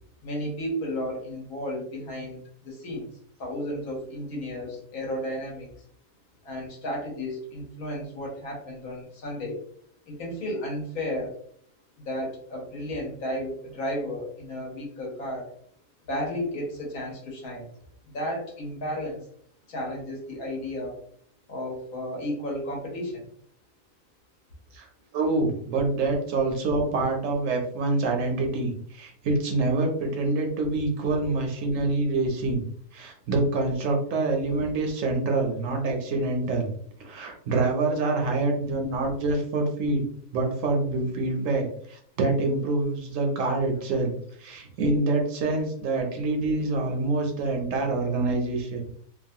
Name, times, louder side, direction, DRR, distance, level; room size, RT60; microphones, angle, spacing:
voice 1, 0.2-3.1 3.4-5.7 6.4-9.6 10.1-11.3 12.0-15.5 16.1-17.7 18.1-19.2 19.7-21.0 21.5-23.2, equal, 75° left, -2 dB, 1.4 m, -33 dB
voice 2, 25.1-32.6 32.9-36.7 37.0-40.0 40.3-44.1 44.4-48.8, right 2 dB, 70° right, 2 dB, 0.9 m, -26 dB
2.9 x 2.2 x 2.7 m, 0.63 s
omnidirectional pair, 1.5 m